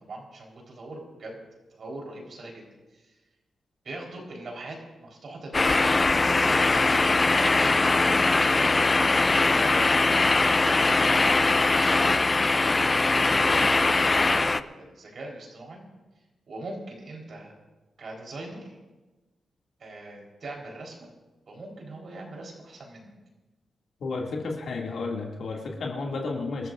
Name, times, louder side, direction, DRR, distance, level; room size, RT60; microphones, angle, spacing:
voice 1, 0.1-1.4 1.7-2.6 3.8-8.9 9.3-12.2 13.1-15.8 16.5-17.5 18.0-18.8 19.8-21.1 21.5-23.1, right 2 dB, 60° right, -1 dB, 4.1 m, -41 dB
sound 1, 5.5-14.6, left 3 dB, 25° left, 0.4 m, -21 dB
voice 2, 24.0-26.7, left 3 dB, 75° left, -1 dB, 2.4 m, -32 dB
26.5 x 13.5 x 2.6 m, 1.2 s
wide cardioid pair, 110°, 0 cm